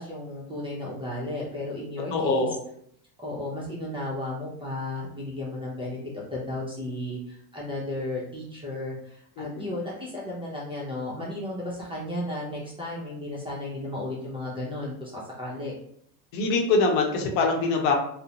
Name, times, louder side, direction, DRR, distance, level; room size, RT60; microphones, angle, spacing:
voice 1, 0.0-2.6 3.2-15.8, left 1 dB, 10° right, -6 dB, 0.5 m, -34 dB
voice 2, 2.1-2.5 9.4-9.6 16.3-17.9, left 3 dB, 65° left, 2 dB, 0.8 m, -23 dB
2.4 x 2.1 x 2.8 m, 0.69 s
hypercardioid pair, 90°, 48 cm